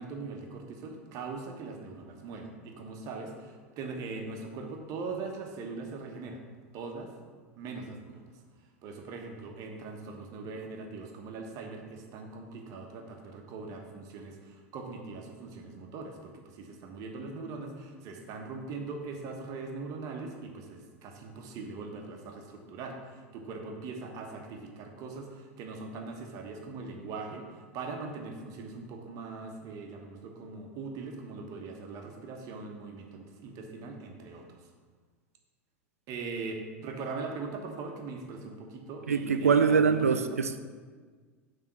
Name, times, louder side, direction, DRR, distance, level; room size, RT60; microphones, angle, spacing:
voice 1, 0.0-6.4 6.7-7.1 7.6-8.3 8.8-34.7 36.1-40.4, right 4 dB, 50° right, 3 dB, 1.2 m, -41 dB
voice 2, 39.1-40.6, right 6 dB, 90° right, 10 dB, 0.4 m, -24 dB
7.4 x 3.6 x 5.9 m, 1.5 s
hypercardioid pair, 85°, 8 cm